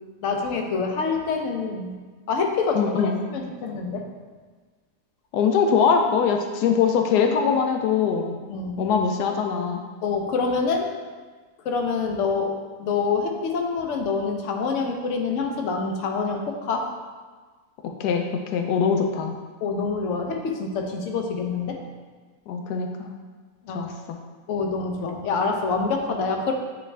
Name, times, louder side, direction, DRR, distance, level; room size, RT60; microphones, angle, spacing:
voice 1, 0.2-1.9 2.3-4.1 8.5-8.9 10.0-10.9 11.6-12.5 12.8-16.9 19.6-21.8 23.7-23.9 24.5-26.5, left 4 dB, 60° left, 2 dB, 0.9 m, -26 dB
voice 2, 2.7-3.2 5.3-8.4 8.8-9.8 17.8-19.3 22.5-23.1 23.7-24.2, left 6 dB, 85° left, 4 dB, 1.1 m, -22 dB
9.0 x 3.3 x 3.3 m, 1.4 s
omnidirectional pair, 1.7 m